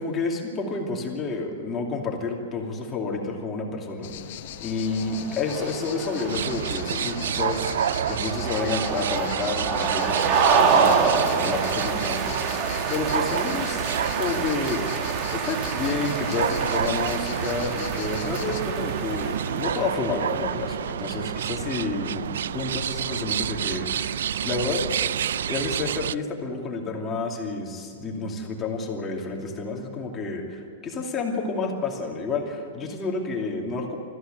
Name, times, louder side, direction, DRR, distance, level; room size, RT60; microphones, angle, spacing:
voice 1, 0.0-4.1 4.6-24.8 25.5-34.0, left 3 dB, 15° left, 0 dB, 2.6 m, -30 dB
sound 1, 4.0-18.6, left 12 dB, 50° left, 1.0 m, -40 dB
sound 2, 4.9-20.5, right 5 dB, 35° right, 1.4 m, -27 dB
sound 3, 6.3-26.1, right 9 dB, 85° right, 0.4 m, -29 dB
21.0 x 14.5 x 9.1 m, 2.5 s
supercardioid pair, 165°, 0 cm